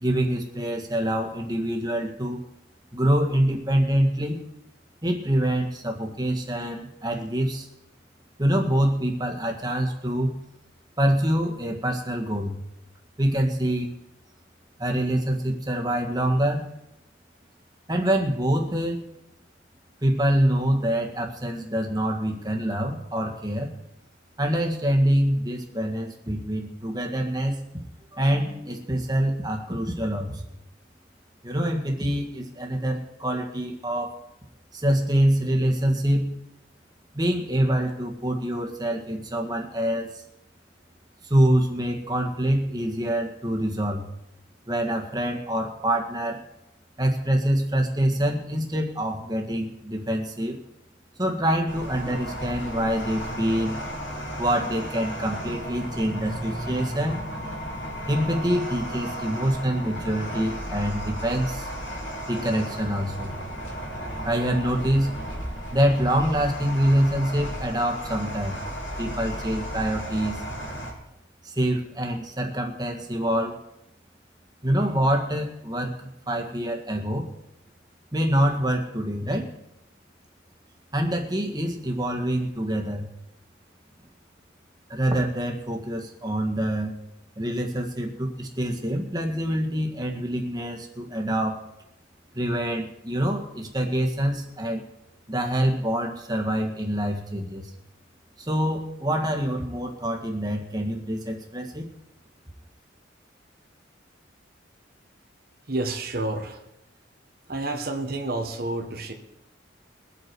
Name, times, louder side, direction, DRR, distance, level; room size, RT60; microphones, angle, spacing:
voice 1, 0.0-2.4 2.9-4.4 5.0-7.7 8.4-10.3 11.0-12.6 13.2-13.9 14.8-16.7 17.9-19.0 20.0-23.7 24.4-27.6 28.1-30.4 31.4-34.2 34.7-36.4 37.1-40.2 41.2-44.1 44.7-46.4 47.0-50.6 51.2-53.8 54.4-57.2 58.1-61.7 62.3-63.4 64.2-65.1 65.7-68.6 69.0-70.4 71.4-73.6 74.6-77.3 78.1-79.5 80.9-83.1 84.9-86.9 87.4-91.6 92.3-94.8 95.3-97.7 98.4-101.9, right 1 dB, 20° right, 2 dB, 1.8 m, -25 dB
sound 1, 51.7-70.9, equal, 80° left, 4.7 m, -34 dB
voice 2, 105.7-106.6 107.5-109.1, right 2 dB, 50° right, 4 dB, 1.4 m, -29 dB
22.5 x 8.3 x 4.7 m, 0.87 s
head